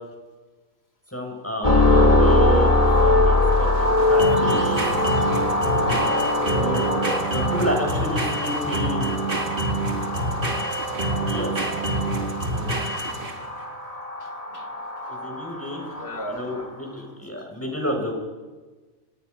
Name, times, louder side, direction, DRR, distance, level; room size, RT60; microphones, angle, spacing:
voice 1, 1.1-2.7 3.0-4.8 6.5-6.9 7.3-9.1 11.3-11.5 12.5-12.8 15.1-15.8 16.3-18.1, left 1 dB, 10° left, 1 dB, 6.4 m, -30 dB
sound 1, 1.6-16.7, left 2 dB, 25° left, 3.6 m, -22 dB
sound 2, 2.0-13.6, right 2 dB, 40° right, 2.1 m, -27 dB
voice 2, 4.3-5.4 5.8-7.2 11.9-12.2 12.5-13.4 14.2-14.7 15.0-15.4 15.9-16.7, left 1 dB, 50° left, 7 dB, 3.5 m, -39 dB
29.0 x 25.5 x 5.5 m, 1.3 s
omnidirectional pair, 1.4 m